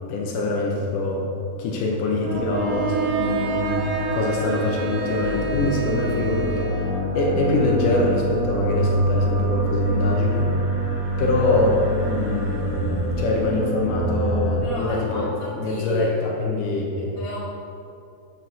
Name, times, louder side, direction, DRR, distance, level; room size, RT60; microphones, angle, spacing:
voice 1, 0.1-1.3 1.6-6.7 7.1-10.5 11.2-15.3 15.6-17.2, left 2 dB, 70° left, -1 dB, 2.3 m, -24 dB
sound 1, 2.2-14.6, right 1 dB, 40° right, 1.7 m, -25 dB
Bowed string instrument, 2.5-7.0, right 5 dB, 75° right, 2.3 m, -31 dB
voice 2, 14.6-16.2 17.1-17.4, equal, 20° right, -8 dB, 0.9 m, -33 dB
9.6 x 5.9 x 6.2 m, 2.6 s
omnidirectional pair, 4.2 m